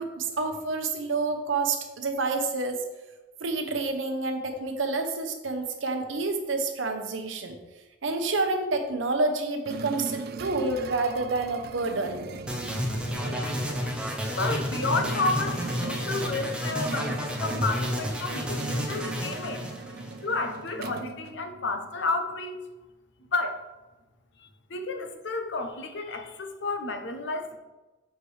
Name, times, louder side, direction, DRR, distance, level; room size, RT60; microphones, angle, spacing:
voice 1, 0.0-2.8 3.4-7.6 8.0-12.3, right 3 dB, 85° right, 5 dB, 0.8 m, -28 dB
sound 1, 9.7-21.9, right 4 dB, 55° right, 0.3 m, -39 dB
sound 2, 12.5-20.5, equal, 5° right, 0.7 m, -31 dB
voice 2, 14.4-19.7 20.2-22.6 23.3-23.6 24.4-27.6, left 3 dB, 65° left, 6 dB, 0.7 m, -31 dB
6.5 x 4.7 x 3.3 m, 1.1 s
head